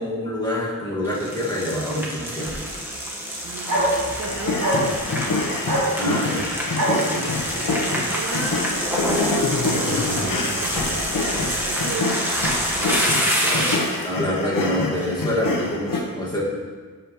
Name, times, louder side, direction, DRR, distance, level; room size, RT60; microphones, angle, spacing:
voice 1, 0.0-2.5 6.0-6.5 7.0-7.3 13.4-13.7 14.0-16.5, left 1 dB, 10° left, -6 dB, 1.7 m, -26 dB
sound 1, 1.0-14.0, equal, 5° right, 1.1 m, -27 dB
sound 2, 1.9-12.2, right 1 dB, 65° right, 2.2 m, -30 dB
voice 2, 3.4-5.0 6.9-7.1 7.4-12.2 12.7-13.9 14.4-15.2, right 4 dB, 45° right, 0 dB, 0.8 m, -35 dB
sound 3, 4.3-16.0, left 3 dB, 75° left, 0.9 m, -26 dB
12.5 x 5.0 x 3.0 m, 1.5 s
wide cardioid pair, 140°, 34 cm